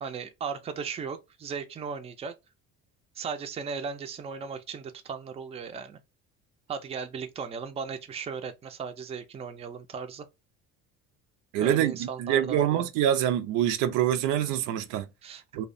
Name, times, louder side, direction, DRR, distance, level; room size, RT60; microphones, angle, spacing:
voice 1, 0.0-2.3 3.2-6.0 6.7-10.3 11.6-12.9 15.2-15.6, right 6 dB, 20° right, 0.4 m, -36 dB
voice 2, 11.5-15.1 15.5-15.6, right 11 dB, 80° right, 0.5 m, -25 dB
2.7 x 2.1 x 2.5 m
cardioid pair, 110°, 30 cm